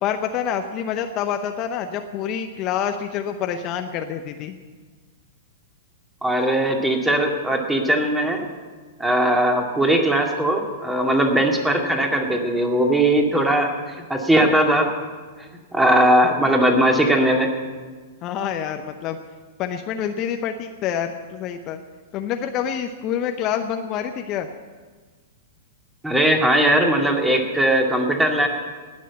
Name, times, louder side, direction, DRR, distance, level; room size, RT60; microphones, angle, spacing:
voice 1, 0.0-4.6 18.2-19.2 19.6-21.8 22.1-24.5, left 8 dB, 35° left, 6 dB, 0.8 m, -27 dB
voice 2, 6.2-8.5 9.0-13.7 14.1-14.9 15.7-17.5 26.0-28.5, right 1 dB, 10° right, 2 dB, 2.2 m, -19 dB
18.5 x 6.5 x 8.3 m, 1.4 s
hypercardioid pair, 105°, 0 cm